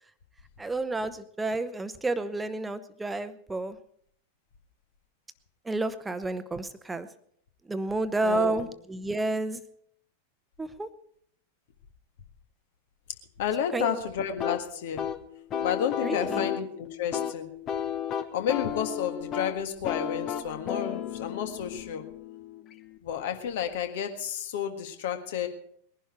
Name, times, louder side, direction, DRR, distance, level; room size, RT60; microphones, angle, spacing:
voice 1, 0.6-3.8 5.6-7.1 7.7-9.6 10.6-10.9 13.7-14.0 16.0-16.5, right 2 dB, 10° right, 13 dB, 1.0 m, -30 dB
voice 2, 8.2-8.7 13.4-15.1 15.6-17.5 18.3-22.0 23.0-25.5, left 8 dB, 55° left, 7 dB, 1.7 m, -31 dB
sound 1, 14.4-23.0, left 8 dB, 30° left, 1.0 m, -34 dB
21.0 x 11.0 x 4.4 m, 0.64 s
figure-of-eight pair, 90°, 0 cm